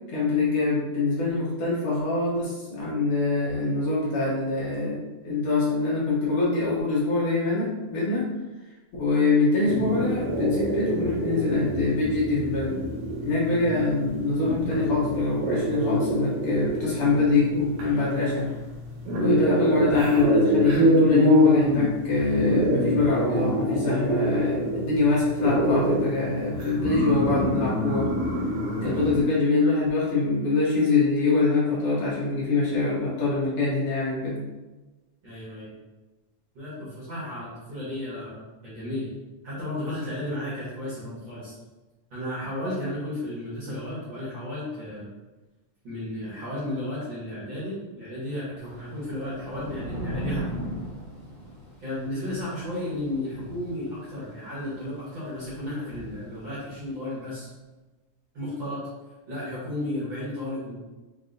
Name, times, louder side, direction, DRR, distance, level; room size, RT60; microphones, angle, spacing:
voice 1, 0.1-8.2 9.0-12.7 13.2-18.5 19.2-28.1 28.8-34.4, left 3 dB, 70° left, -6 dB, 1.4 m, -24 dB
sound 1, 9.6-29.2, right 1 dB, 75° right, 2.4 m, -26 dB
voice 2, 13.5-13.8 28.8-29.1 35.2-35.7 36.5-39.1 39.4-41.5 42.1-45.1 45.8-50.7 51.8-57.5 58.3-58.8 59.3-60.7, left 1 dB, 55° right, -10 dB, 1.4 m, -33 dB
Thunder / Rain, 48.6-57.0, equal, 55° left, 1.4 m, -38 dB
5.3 x 2.6 x 2.5 m, 1.2 s
omnidirectional pair, 3.7 m